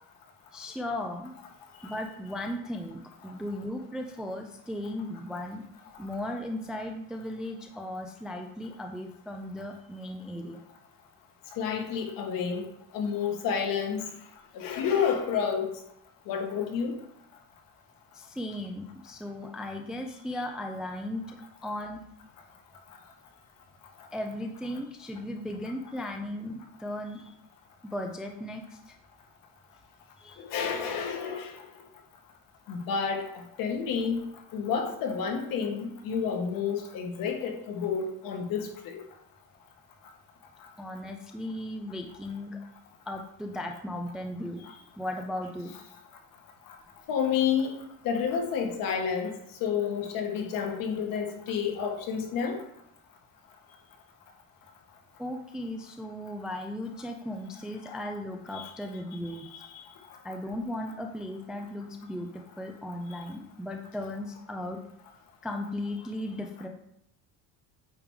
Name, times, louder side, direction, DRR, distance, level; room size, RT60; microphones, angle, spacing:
voice 1, 0.5-1.3 1.8-5.7 6.0-10.6 18.1-21.4 21.6-22.0 24.1-27.3 27.8-28.9 30.2-30.5 40.8-42.6 43.1-44.6 45.0-45.7 55.2-59.5 60.2-62.3 62.6-64.8 65.4-66.7, left 1 dB, ahead, 3 dB, 0.3 m, -36 dB
voice 2, 11.6-12.6 12.9-14.1 14.5-15.7 16.3-16.9 30.4-31.5 32.7-33.3 33.6-34.2 34.5-39.0 47.1-49.3 49.6-52.6 58.5-58.7, left 6 dB, 60° left, 3 dB, 1.5 m, -30 dB
8.9 x 3.5 x 4.7 m, 0.76 s
cardioid pair, 165°, 38 cm